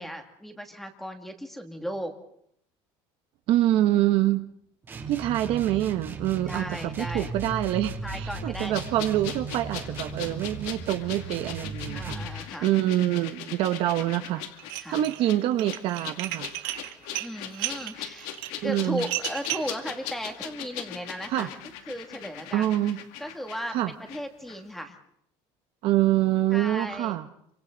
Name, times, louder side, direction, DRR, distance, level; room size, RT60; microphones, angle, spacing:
voice 1, 0.0-2.2 6.4-7.3 8.0-8.7 11.9-12.7 14.8-15.0 17.2-18.3 18.6-21.5 21.9-22.7 23.2-25.0 26.5-27.2, equal, ahead, 5 dB, 2.2 m, -36 dB
voice 2, 3.5-4.4 5.1-6.7 7.0-14.4 14.9-16.5 18.6-19.0 21.3-21.5 22.5-23.0 23.7-23.9 25.8-27.3, right 13 dB, 50° right, 9 dB, 1.1 m, -25 dB
sound 1, 4.8-12.4, right 4 dB, 20° right, 2.8 m, -36 dB
sound 2, 8.7-24.2 24.5-24.6, left 11 dB, 75° left, 2.3 m, -40 dB
Dishes pots and pans, 14.6-15.2 15.5-19.8, right 16 dB, 85° right, 1.9 m, -34 dB
28.5 x 25.5 x 4.0 m, 0.71 s
cardioid pair, 170°, 11 cm